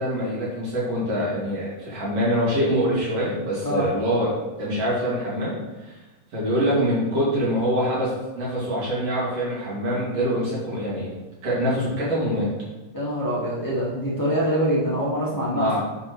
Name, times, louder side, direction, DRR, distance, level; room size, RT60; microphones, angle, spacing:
voice 1, 0.0-4.3 4.6-5.6 5.9-6.0 6.3-11.1 11.4-12.5 15.5-15.8, equal, 50° right, -6 dB, 3.5 m, -24 dB
voice 2, 12.9-15.7, equal, 10° left, -7 dB, 1.0 m, -24 dB
10.0 x 5.8 x 3.3 m, 1.1 s
omnidirectional pair, 3.6 m